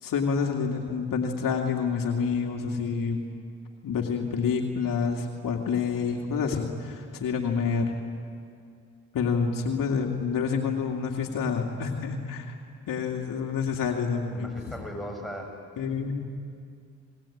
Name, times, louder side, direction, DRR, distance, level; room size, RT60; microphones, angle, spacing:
voice 1, 0.0-3.2 3.8-7.9 9.1-12.5 12.9-14.6 15.8-16.2, left 5 dB, 65° left, 1 dB, 2.6 m, -28 dB
voice 2, 14.3-15.6, equal, ahead, 0 dB, 7.8 m, -37 dB
27.5 x 21.5 x 8.7 m, 2.3 s
supercardioid pair, 55°, 35 cm